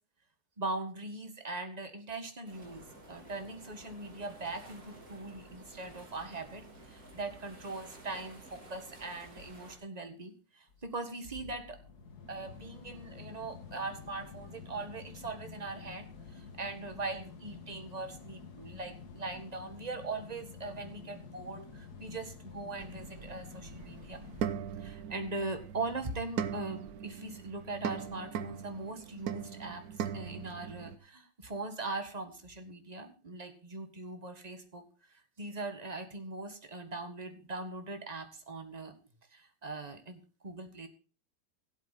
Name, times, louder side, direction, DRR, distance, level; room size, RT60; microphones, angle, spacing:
voice 1, 0.6-11.8 12.3-24.2 24.8-38.9 39.3-40.9, right 3 dB, 20° right, 6 dB, 1.6 m, -41 dB
sound 1, 2.5-9.8, right 1 dB, 45° right, 3.6 m, -53 dB
sound 2, 10.7-24.4, left 5 dB, 55° left, 2.2 m, -49 dB
sound 3, 22.8-31.0, right 8 dB, 60° right, 1.1 m, -40 dB
16.5 x 8.3 x 4.1 m, 0.38 s
omnidirectional pair, 2.1 m